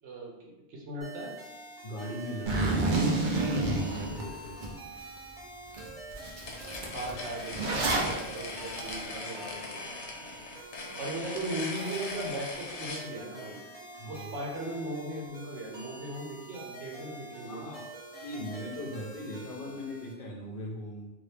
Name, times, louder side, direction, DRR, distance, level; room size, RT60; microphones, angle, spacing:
voice 1, 0.0-1.3 6.9-9.9 11.0-13.6 14.1-17.8, right 1 dB, 85° right, -1 dB, 1.1 m, -38 dB
sound 1, 1.0-20.1, right 2 dB, 5° right, 0.9 m, -47 dB
voice 2, 1.8-3.3 3.9-4.7 14.0-14.3 17.5-17.8 18.2-21.1, left 1 dB, 55° left, -2 dB, 0.9 m, -40 dB
Zipper (clothing), 2.5-4.7 5.2-5.3 5.7-5.9 6.1-8.1, right 2 dB, 50° right, 0.7 m, -28 dB
sound 2, 6.4-13.1, left 3 dB, 75° left, 1.0 m, -40 dB
2.8 x 2.7 x 3.3 m, 1.0 s
omnidirectional pair, 1.2 m